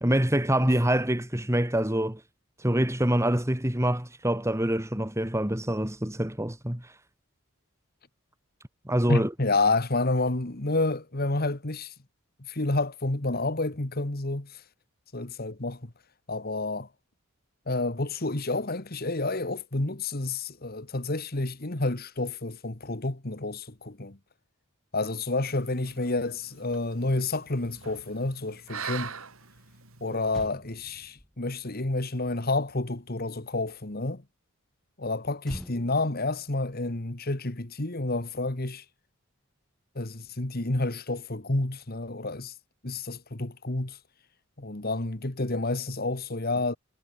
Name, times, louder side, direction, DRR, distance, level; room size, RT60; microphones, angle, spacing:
voice 1, 0.0-2.2 2.6-6.9 8.9-9.3, right 1 dB, 15° right, 2.4 m, -25 dB
voice 2, 9.1-11.9 12.5-14.6 15.1-15.9 16.3-16.9 17.7-24.2 24.9-29.1 30.0-34.2 35.0-38.8 40.0-42.5 42.8-44.0 44.6-46.8, left 2 dB, 45° left, 1.8 m, -29 dB
sound 1, 25.5-30.4, right 6 dB, 80° right, 5.2 m, -43 dB
Motor vehicle (road), 30.3-33.8 35.4-38.0 38.3-38.5, equal, ahead, 4.9 m, -47 dB
head